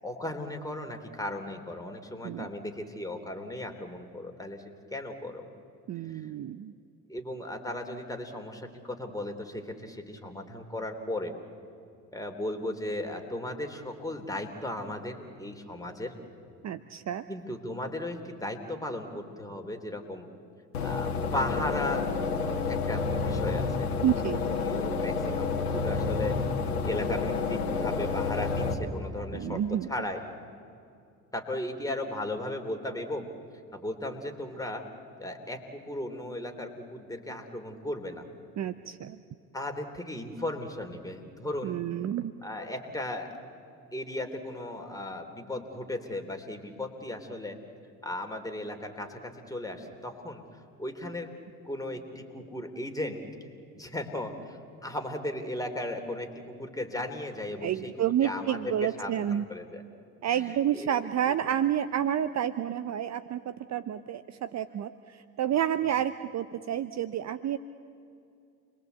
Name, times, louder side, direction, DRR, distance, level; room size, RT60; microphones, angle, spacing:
voice 1, 0.0-5.5 6.0-6.3 7.1-11.3 12.1-16.2 17.3-20.3 20.8-22.1 22.7-23.9 24.6-26.4 26.8-29.6 29.9-30.2 31.3-33.3 33.7-34.9 35.2-38.3 39.5-41.8 42.4-43.3 43.9-47.6 48.0-50.4 50.8-51.3 51.6-53.2 53.7-59.8 60.3-61.0, left 1 dB, 10° left, 4 dB, 3.4 m, -36 dB
voice 2, 5.9-6.7 16.6-17.3 24.0-24.7 29.3-29.9 38.6-39.2 41.6-42.3 57.6-59.4 60.2-67.6, right 10 dB, 40° right, 13 dB, 0.8 m, -30 dB
sound 1, 20.7-28.7, left 4 dB, 85° left, 2.0 m, -29 dB
29.0 x 21.5 x 8.2 m, 2.5 s
hypercardioid pair, 60°, 44 cm